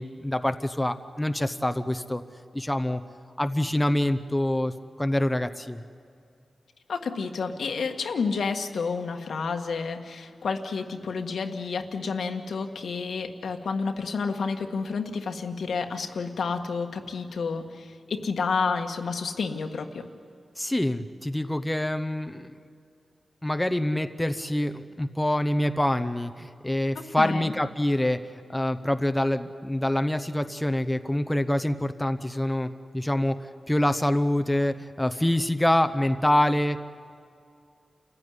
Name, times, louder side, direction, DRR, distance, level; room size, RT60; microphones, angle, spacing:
voice 1, 0.0-2.2 2.5-3.0 3.4-4.7 5.0-5.8 20.6-22.5 23.4-28.2 28.5-33.4 33.7-36.8, left 1 dB, 10° left, 8 dB, 0.8 m, -26 dB
voice 2, 6.9-20.0 26.9-27.5, left 5 dB, 85° left, 5 dB, 1.6 m, -30 dB
28.5 x 15.0 x 9.7 m, 2.4 s
wide cardioid pair, 130°, 0 cm